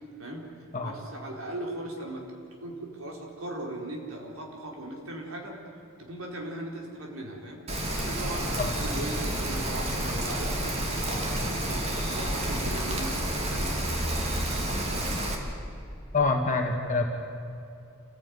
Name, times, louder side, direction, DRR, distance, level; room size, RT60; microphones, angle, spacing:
voice 1, 0.8-2.2 2.6-5.6 6.0-13.2 13.5-13.8, right 1 dB, 75° right, 0 dB, 4.5 m, -38 dB
Rain, 7.7-15.3, right 1 dB, 30° right, 2.9 m, -29 dB
voice 2, 16.1-17.0, left 3 dB, 35° left, 2 dB, 1.6 m, -26 dB
28.5 x 16.0 x 9.7 m, 2.7 s
head